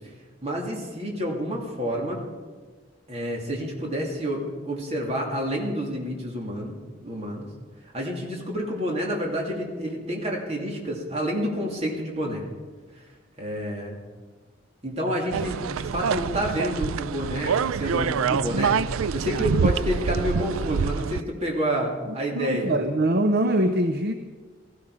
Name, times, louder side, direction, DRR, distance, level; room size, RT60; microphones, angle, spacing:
voice 1, 0.4-2.2 3.1-6.7 7.0-7.5 7.9-12.4 13.4-14.0 14.8-18.8 19.1-22.7, equal, 30° right, -1 dB, 2.9 m, -29 dB
sound 1, 15.3-21.2, right 6 dB, 90° right, 0.4 m, -26 dB
voice 2, 22.3-24.1, right 1 dB, 50° right, 7 dB, 0.7 m, -23 dB
16.5 x 15.5 x 5.0 m, 1.4 s
head